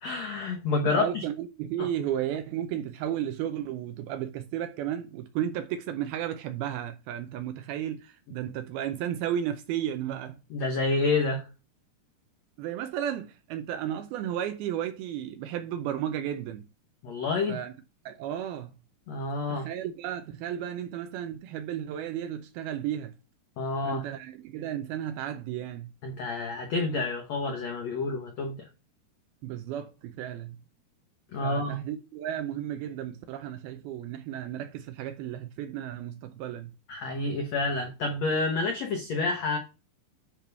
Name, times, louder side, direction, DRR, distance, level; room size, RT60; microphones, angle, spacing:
voice 1, 0.0-1.2 1.8-1.9 10.5-11.5 17.0-17.6 19.1-19.7 23.6-24.0 26.0-28.7 31.3-31.8 36.9-39.6, left 3 dB, 85° left, 1.5 m, -29 dB
voice 2, 0.9-10.4 12.6-16.7 17.5-17.7 18.1-18.7 19.5-23.1 23.8-25.9 29.4-30.6 31.4-36.7, right 10 dB, 80° right, 2.2 m, -33 dB
10.0 x 3.5 x 5.2 m
omnidirectional pair, 4.9 m